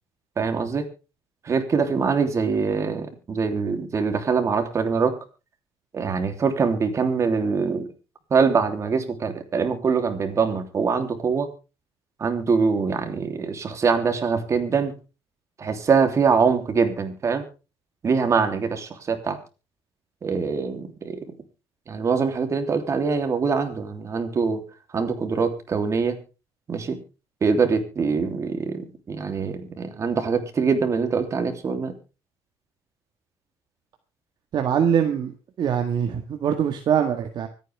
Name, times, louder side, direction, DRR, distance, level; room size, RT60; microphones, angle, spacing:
voice 1, 0.4-0.9 1.4-5.1 5.9-7.9 8.3-11.5 12.2-14.9 15.6-17.4 18.0-19.4 20.2-21.2 21.9-24.6 24.9-26.2 26.7-27.0 27.4-31.9, right 5 dB, 30° right, 7 dB, 3.2 m, -23 dB
voice 2, 34.5-35.3 35.6-37.5, right 8 dB, 50° right, 5 dB, 1.7 m, -23 dB
25.0 x 9.3 x 3.5 m, 0.32 s
cardioid pair, 135°, 10 cm